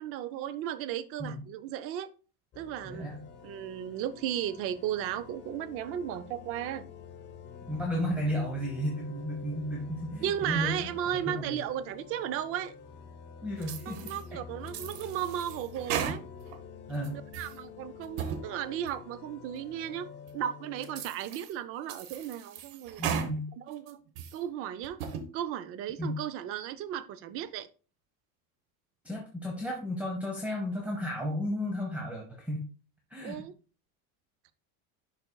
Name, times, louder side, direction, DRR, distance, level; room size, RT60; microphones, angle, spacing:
voice 1, 0.0-2.1 2.6-3.1 3.4-6.8 10.2-12.7 13.8-16.2 17.1-20.1 20.3-23.0 23.6-24.0 24.3-25.0 25.3-27.7 33.2-33.5, right 10 dB, 35° right, 0.4 m, -35 dB
sound 1, 2.5-21.0, left 6 dB, 25° left, 0.7 m, -48 dB
voice 2, 2.8-3.2 7.7-10.9 11.2-11.6 13.4-14.1 16.9-17.2 23.0-23.5 26.0-26.2 29.0-32.7 33.1-33.4, equal, 5° right, 0.8 m, -33 dB
sound 2, 13.6-14.2 14.7-16.6 16.9-17.6 18.0-18.4 18.9-19.0 19.6-19.7 20.3-20.4 20.8-21.5 21.9-23.3 23.7-24.4 24.8-25.2, right 8 dB, 55° right, 1.1 m, -37 dB
11.0 x 4.3 x 2.2 m
cardioid pair, 165°, 41 cm